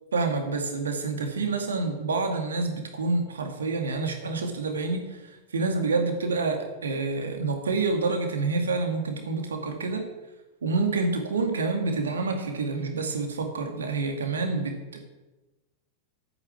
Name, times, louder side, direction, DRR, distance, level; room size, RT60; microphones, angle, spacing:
voice 1, 0.1-10.1 10.6-15.0, right 3 dB, 70° right, 4 dB, 2.2 m, -28 dB
9.6 x 9.2 x 8.5 m, 1.1 s
figure-of-eight pair, 90°, 0 cm